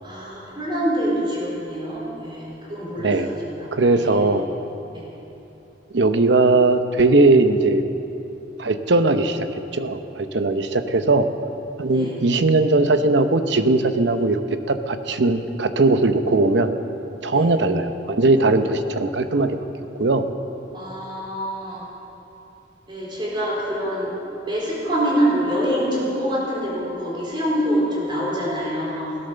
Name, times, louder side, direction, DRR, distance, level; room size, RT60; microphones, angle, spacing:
voice 1, 0.0-4.3 4.9-5.0 11.9-12.1 17.3-17.5 20.7-21.8 22.9-24.1 24.4-29.2, equal, 25° right, -5 dB, 4.2 m, -25 dB
voice 2, 3.7-4.5 5.9-7.8 8.6-11.3 11.8-14.4 14.7-16.7 17.2-19.6 20.0-20.3, right 2 dB, 70° right, 9 dB, 0.8 m, -19 dB
17.0 x 11.5 x 6.8 m, 2.9 s
head